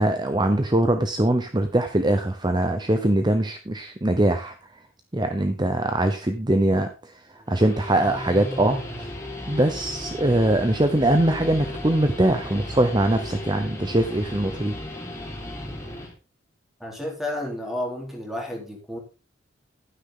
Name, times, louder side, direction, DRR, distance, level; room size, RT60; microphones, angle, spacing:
voice 1, 0.0-4.6 5.1-9.1 9.5-14.8, right 1 dB, 20° right, 7 dB, 0.8 m, -22 dB
Guitar, 7.4-16.1, left 1 dB, 15° left, 3.6 m, -35 dB
voice 2, 16.8-19.0, left 1 dB, ahead, 0 dB, 3.7 m, -31 dB
11.5 x 9.8 x 3.8 m, 0.31 s
head